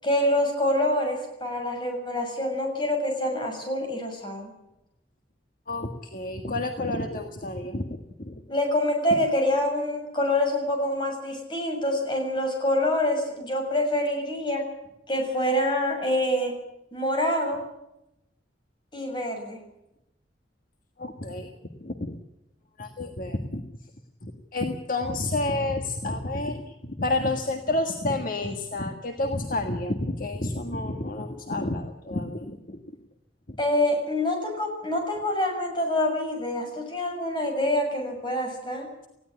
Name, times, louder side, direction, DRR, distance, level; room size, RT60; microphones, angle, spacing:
voice 1, 0.0-4.5 8.5-14.6 15.1-16.5 16.9-17.6 18.9-19.6 33.6-38.9, left 1 dB, 25° left, 3 dB, 6.9 m, -26 dB
voice 2, 5.7-8.3 9.1-9.2 21.0-21.5 21.8-22.2 22.8-23.6 24.2-32.8 33.5-33.6, left 2 dB, 50° left, 5 dB, 1.6 m, -30 dB
19.5 x 16.5 x 9.8 m, 0.86 s
head